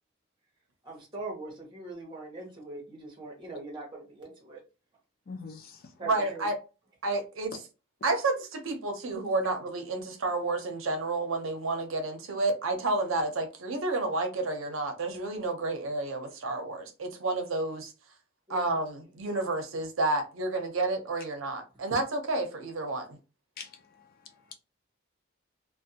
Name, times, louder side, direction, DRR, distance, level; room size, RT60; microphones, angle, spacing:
voice 1, 0.8-4.6 6.0-6.5 18.5-18.7, right 2 dB, 20° right, 1.0 m, -41 dB
voice 2, 5.3-5.9 7.1-7.2 23.6-24.6, left 5 dB, 45° left, 0.4 m, -45 dB
voice 3, 6.0-6.5 7.0-7.5 8.0-17.9 18.5-23.2, right 2 dB, 70° right, 0.6 m, -30 dB
2.5 x 2.1 x 2.7 m
head